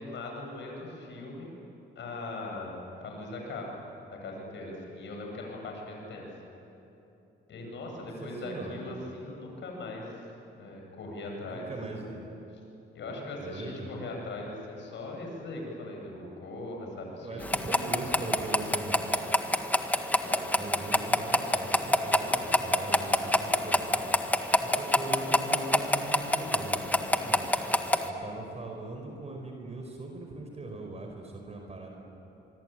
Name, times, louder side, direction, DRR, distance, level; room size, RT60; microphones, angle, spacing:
voice 1, 0.0-1.5 1.9-3.8 4.2-6.3 7.5-10.2 10.6-12.2 12.9-18.2 20.0-20.8 21.4-21.6 24.5-24.7, left 2 dB, 65° left, 0 dB, 7.9 m, -40 dB
voice 2, 7.9-8.9 11.5-12.1 13.0-13.9 17.2-19.1 20.5-24.0 24.5-27.5 28.0-31.9, right 2 dB, 35° right, 2 dB, 4.8 m, -40 dB
sound 1, 17.4-28.1, left 1 dB, 10° left, 1.7 m, -27 dB
24.5 x 24.0 x 9.2 m, 3.0 s
cardioid pair, 90°, 20 cm